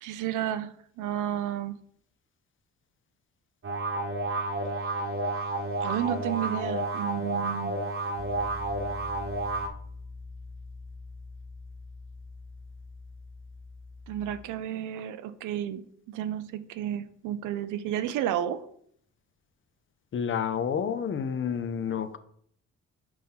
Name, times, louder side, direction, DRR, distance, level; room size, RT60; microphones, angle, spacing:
voice 1, 0.0-1.8 5.8-7.7 14.1-18.6, right 11 dB, 85° right, 0.5 m, -32 dB
sound 1, 3.6-9.7, right 2 dB, 45° right, 1.1 m, -31 dB
Piano, 8.2-14.5, left 3 dB, 10° right, 0.5 m, -44 dB
voice 2, 20.1-22.2, left 7 dB, 40° left, 0.6 m, -29 dB
6.1 x 4.2 x 3.7 m
cardioid pair, 90°, 30 cm